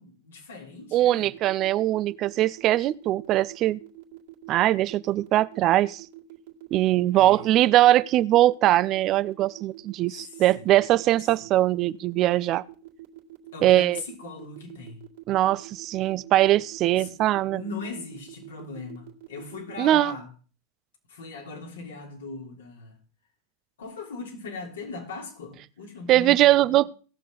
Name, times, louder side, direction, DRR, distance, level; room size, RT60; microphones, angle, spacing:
voice 1, 0.0-1.3 7.1-7.5 10.1-10.7 13.5-15.0 16.9-20.3 21.1-23.0 23.8-26.8, left 3 dB, 80° left, 3.4 m, -39 dB
voice 2, 0.9-3.8 4.5-6.1 6.7-12.6 13.6-14.0 15.3-17.6 19.8-20.2 26.1-26.9, right 14 dB, 45° right, 0.4 m, -21 dB
sound 1, 1.3-19.7, right 17 dB, 65° right, 2.1 m, -45 dB
17.5 x 6.5 x 3.9 m
hypercardioid pair, 95°, 0 cm